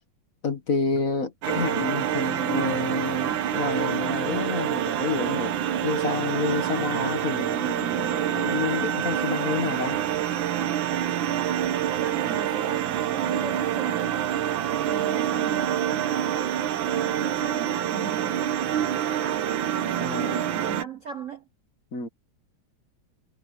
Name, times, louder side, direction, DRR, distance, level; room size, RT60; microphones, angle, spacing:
voice 1, 0.4-5.6 5.8-10.0 20.0-20.4 21.9-22.1, left 5 dB, 45° left, 1.8 m, -29 dB
sound 1, 1.4-20.8, right 10 dB, 70° right, 1.7 m, -26 dB
voice 2, 11.8-14.2 14.9-16.4 16.8-18.5 18.9-19.6 20.2-21.4, right 5 dB, 55° right, 0.9 m, -39 dB
omnidirectional pair, 2.3 m